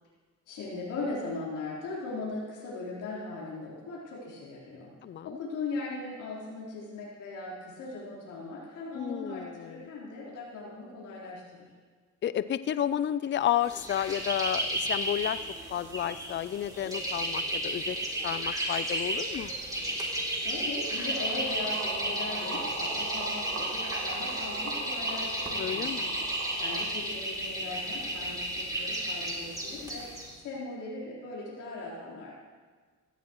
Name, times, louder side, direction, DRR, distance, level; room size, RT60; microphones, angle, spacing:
voice 1, 0.5-4.9 5.2-11.7 20.3-26.2 26.5-30.0 30.4-32.3, left 3 dB, 85° left, -7 dB, 4.0 m, -39 dB
voice 2, 5.0-5.4 8.9-9.9 12.2-15.4 15.7-18.0 18.2-19.5 25.6-26.2, left 10 dB, 40° left, 14 dB, 0.5 m, -31 dB
sound 1, 13.7-30.3, right 1 dB, 10° right, 2.9 m, -33 dB
sound 2, 20.8-26.9, right 3 dB, 60° right, 2.8 m, -40 dB
17.5 x 14.5 x 3.1 m, 1.5 s
cardioid pair, 90°, 30 cm